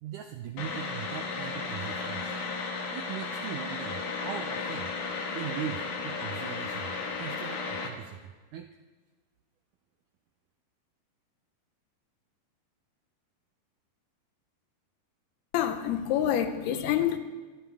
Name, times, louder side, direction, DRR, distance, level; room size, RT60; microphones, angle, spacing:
voice 1, 0.0-2.4 2.7-8.7, right 10 dB, 80° right, 1.8 m, -40 dB
sound 1, 0.6-7.9, left 4 dB, 60° left, 2.8 m, -34 dB
voice 2, 15.5-17.2, left 10 dB, 85° left, 3.0 m, -27 dB
26.0 x 13.5 x 3.5 m
omnidirectional pair, 4.5 m